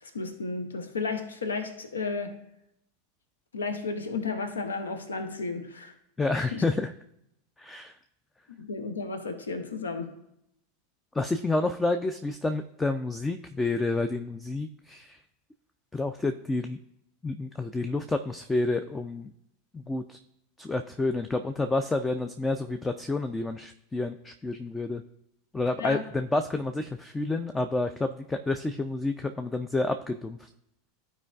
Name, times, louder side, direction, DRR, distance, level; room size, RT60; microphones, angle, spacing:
voice 1, 0.0-2.3 3.5-5.9 6.3-6.6 8.5-10.1 25.8-26.0, left 4 dB, 80° left, 8 dB, 0.7 m, -33 dB
voice 2, 6.2-6.9 7.6-7.9 11.1-15.2 15.9-16.8 17.2-19.3 19.7-20.2 20.6-25.0 25.5-30.4, left 2 dB, 15° left, 8 dB, 0.4 m, -29 dB
13.5 x 4.5 x 2.4 m, 0.79 s
figure-of-eight pair, 85°, 0 cm